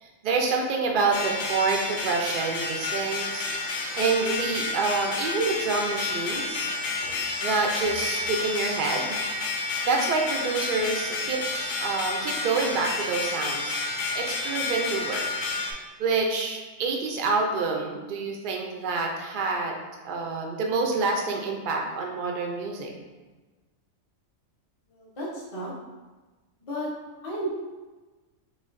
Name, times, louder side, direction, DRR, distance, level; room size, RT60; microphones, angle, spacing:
voice 1, 0.0-6.7 7.4-9.2 9.6-15.2 15.8-19.7 20.0-22.9, right 4 dB, 75° right, 1 dB, 0.4 m, -27 dB
sound 1, 1.1-15.7, left 3 dB, 75° left, 1.0 m, -30 dB
voice 2, 24.9-25.7 26.6-26.9 27.2-27.5, right 1 dB, 30° left, -6 dB, 0.7 m, -33 dB
4.3 x 3.2 x 2.5 m, 1.2 s
omnidirectional pair, 1.4 m